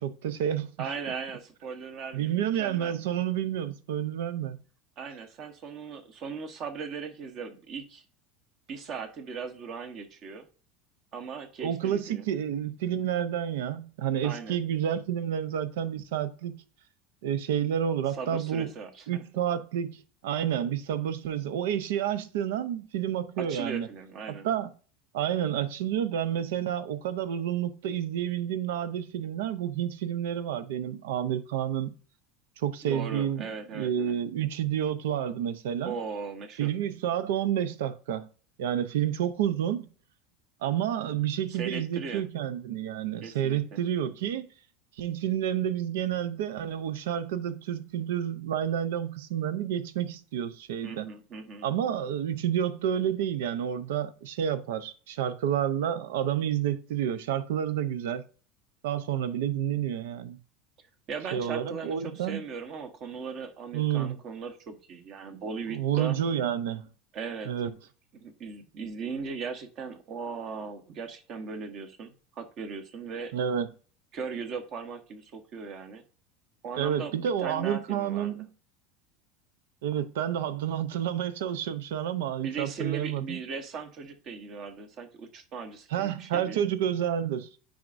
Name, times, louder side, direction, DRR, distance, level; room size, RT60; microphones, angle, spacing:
voice 1, 0.0-0.9 2.1-4.6 11.6-16.6 17.2-18.7 19.1-20.0 20.2-23.9 24.3-24.7 25.1-31.9 32.6-33.5 33.7-35.9 36.6-38.3 38.6-39.9 40.6-44.4 45.0-51.1 51.6-58.2 58.8-60.4 61.3-62.4 63.7-64.2 65.7-66.9 67.4-67.7 73.3-73.7 76.8-78.5 79.8-83.4 85.9-87.5, right 10 dB, 90° right, 0.6 m, -29 dB
voice 2, 0.8-2.9 5.0-8.0 8.7-10.4 11.1-12.3 14.2-14.6 18.1-19.2 23.4-24.5 32.8-34.1 35.8-36.7 41.5-42.2 43.2-43.8 50.8-51.7 61.1-66.2 67.1-67.5 68.1-73.3 74.1-76.0 76.6-78.5 82.4-86.6, right 5 dB, 40° right, 1.1 m, -38 dB
9.2 x 5.0 x 2.6 m
supercardioid pair, 140°, 0 cm